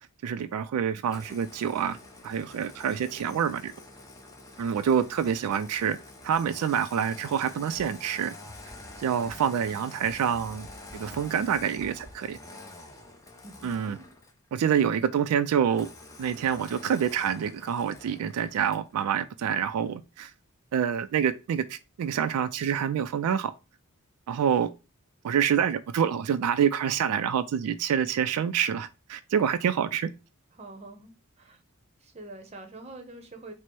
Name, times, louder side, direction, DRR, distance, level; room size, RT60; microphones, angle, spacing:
voice 1, 0.2-2.0 2.2-3.7 4.6-6.0 6.2-8.4 9.0-10.7 10.9-12.4 13.6-14.0 14.5-15.9 16.2-20.3 20.7-23.5 24.3-24.7 25.2-30.1, right 8 dB, 85° right, 0.3 m, -27 dB
Engine starting, 1.0-14.5 15.7-18.9, left 2 dB, 15° left, 0.5 m, -47 dB
sound 1, 7.7-12.1, equal, 45° left, 0.9 m, -50 dB
voice 2, 13.4-14.1 30.5-31.6 32.0-33.5, right 2 dB, 30° right, 0.7 m, -45 dB
4.3 x 2.0 x 4.5 m
head